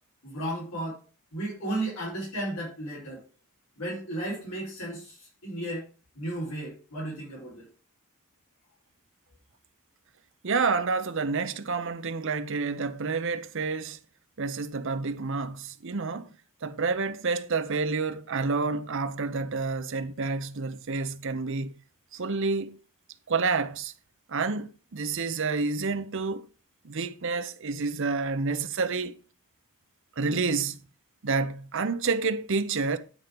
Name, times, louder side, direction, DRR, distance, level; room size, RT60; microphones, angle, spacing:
voice 1, 0.2-1.0 1.3-3.2 3.8-5.8 6.1-7.7, right 1 dB, 90° left, 4.7 m, -34 dB
voice 2, 10.4-14.0 14.4-16.3 16.6-21.7 22.1-22.8 23.3-23.9 24.3-26.4 26.8-29.2 30.2-30.8 31.2-33.0, right 4 dB, 55° right, 0.7 m, -29 dB
9.6 x 4.4 x 5.2 m
head